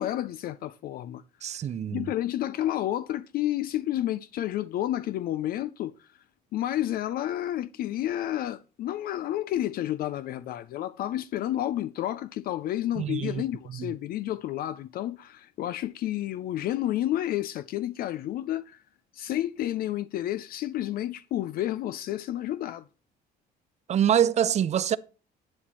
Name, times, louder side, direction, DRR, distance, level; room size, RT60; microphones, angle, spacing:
voice 1, 0.0-6.2 6.5-18.8 19.1-22.9, left 13 dB, 60° left, 0.4 m, -30 dB
voice 2, 1.4-2.1 13.0-13.4 13.7-13.9 23.9-25.0, right 9 dB, 40° right, 0.5 m, -25 dB
11.5 x 8.6 x 3.1 m
cardioid pair, 110°, 17 cm